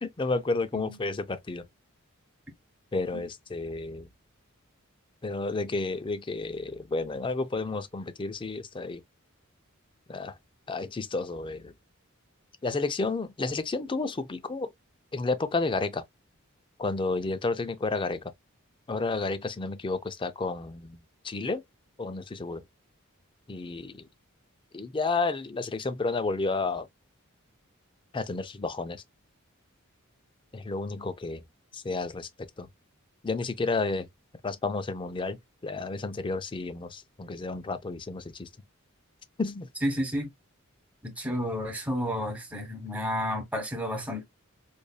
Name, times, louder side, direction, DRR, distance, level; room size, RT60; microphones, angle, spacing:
voice 1, 0.0-1.6 2.9-4.1 5.2-9.0 10.1-10.3 10.7-11.7 12.6-14.7 15.1-16.0 16.8-18.2 18.9-21.0 21.2-21.6 22.0-22.6 23.5-24.0 24.7-26.9 28.1-29.0 30.5-31.4 31.7-32.3 32.6-32.7 33.2-34.1 34.4-38.5 39.4-39.7, left 3 dB, 25° left, 0.4 m, -31 dB
voice 2, 39.8-40.3 41.0-44.2, equal, 5° right, 1.2 m, -31 dB
4.9 x 2.6 x 2.2 m
head